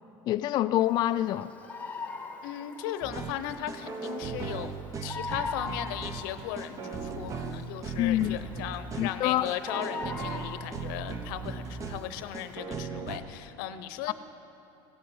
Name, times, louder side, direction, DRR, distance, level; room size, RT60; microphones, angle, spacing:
voice 1, 0.3-1.5 8.0-8.4 9.0-9.5 14.1-14.2, left 13 dB, 40° left, 11 dB, 0.3 m, -26 dB
Bird vocalization bird call bird song, 0.7-12.6, left 4 dB, 15° left, 1.1 m, -43 dB
voice 2, 2.4-4.7 5.0-14.1, left 11 dB, 80° left, 11 dB, 0.8 m, -37 dB
sound 1, 3.0-13.2, right 5 dB, 30° right, 0.9 m, -37 dB
17.0 x 8.5 x 8.1 m, 2.8 s
cardioid pair, 135°, 11 cm